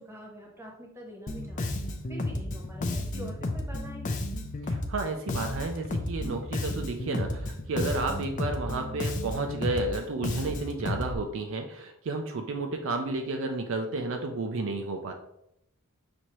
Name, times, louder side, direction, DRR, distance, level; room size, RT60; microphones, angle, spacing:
voice 1, 0.0-4.2, left 1 dB, 10° right, -1 dB, 1.0 m, -45 dB
Bass guitar, 1.3-11.2, left 1 dB, 35° left, 0.5 m, -32 dB
voice 2, 4.6-15.1, right 3 dB, 60° right, 4 dB, 0.4 m, -32 dB
6.0 x 2.7 x 3.0 m, 0.79 s
head